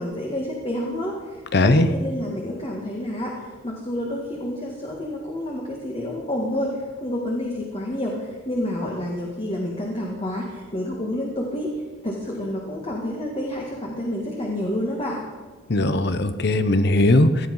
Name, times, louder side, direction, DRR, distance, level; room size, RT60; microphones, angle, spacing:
voice 1, 0.0-11.7 12.0-15.2, left 1 dB, 30° left, -1 dB, 1.9 m, -29 dB
voice 2, 1.5-1.9 15.7-17.5, left 2 dB, 55° left, 11 dB, 0.8 m, -18 dB
18.0 x 12.5 x 5.5 m, 1.4 s
head